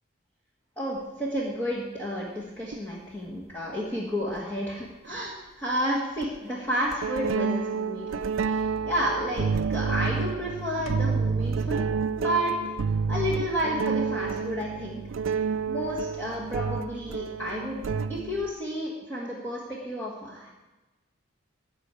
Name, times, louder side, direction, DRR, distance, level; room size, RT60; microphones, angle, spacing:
voice 1, 0.8-11.8 12.2-12.6 13.1-15.0 15.7-17.8 18.1-20.5, equal, 10° left, -6 dB, 1.4 m, -31 dB
sound 1, 2.7-2.8 4.4-4.5 6.2-6.4 6.9-18.5, right 5 dB, 75° right, 0.4 m, -29 dB
13.0 x 4.6 x 8.2 m, 1.1 s
head